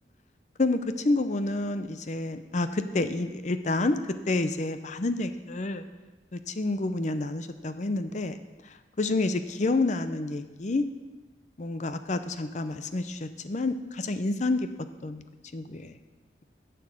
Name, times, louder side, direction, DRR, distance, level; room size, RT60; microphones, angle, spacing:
voice 1, 0.6-5.8 6.3-8.4 9.0-10.8 11.6-14.7 15.0-15.2 15.5-16.0, left 2 dB, 40° left, 10 dB, 0.6 m, -29 dB
10.5 x 7.0 x 6.3 m, 1.2 s
head